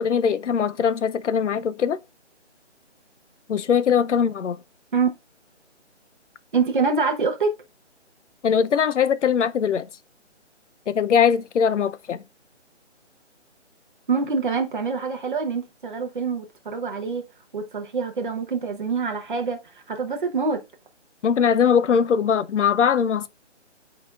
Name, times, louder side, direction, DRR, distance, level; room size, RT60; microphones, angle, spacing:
voice 1, 0.0-2.0 3.5-4.6 8.4-9.9 10.9-12.2 21.2-23.3, left 7 dB, 75° left, 0.6 m, -21 dB
voice 2, 6.5-7.6 14.1-17.2 17.5-20.6, right 5 dB, 45° right, 0.9 m, -25 dB
11.0 x 4.0 x 2.3 m
hypercardioid pair, 170°, 36 cm